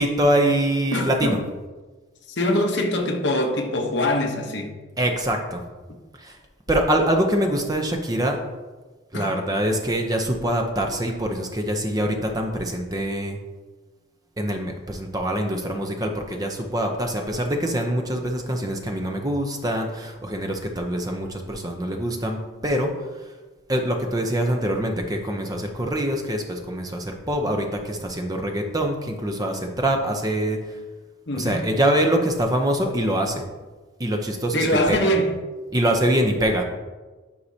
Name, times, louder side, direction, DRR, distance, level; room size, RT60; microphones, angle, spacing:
voice 1, 0.0-1.4 5.0-5.6 6.2-6.4 6.7-8.4 9.1-13.4 14.4-23.1 23.7-30.8 31.3-33.5 34.0-35.1 35.7-36.6, right 1 dB, 20° right, 0.6 m, -24 dB
voice 2, 0.9-1.4 2.4-4.7 9.1-9.3 31.3-31.6 34.5-35.3, left 1 dB, 60° left, 0.9 m, -23 dB
9.7 x 4.7 x 2.7 m
head